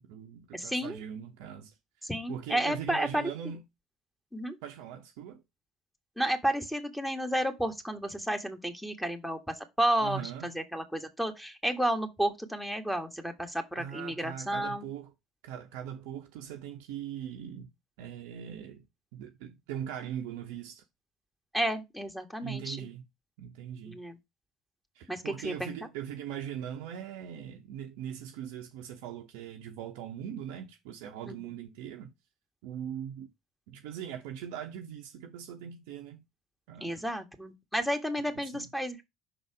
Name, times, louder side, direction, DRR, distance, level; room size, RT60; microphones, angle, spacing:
voice 1, 0.0-1.7 2.0-3.6 4.6-5.4 10.0-10.6 13.8-15.1 15.4-17.7 18.0-18.9 19.1-20.8 22.4-23.0 23.4-24.0 24.9-32.1 32.6-33.3 33.7-36.2 36.7-37.1 38.5-38.7, right 9 dB, 65° right, 0.7 m, -41 dB
voice 2, 0.5-1.0 2.0-3.2 4.3-4.6 6.2-14.9 21.5-22.9 23.8-24.2 25.1-25.9 31.3-31.4 36.8-39.0, right 1 dB, 5° left, 1.6 m, -32 dB
5.9 x 4.0 x 4.7 m
figure-of-eight pair, 55°, 0 cm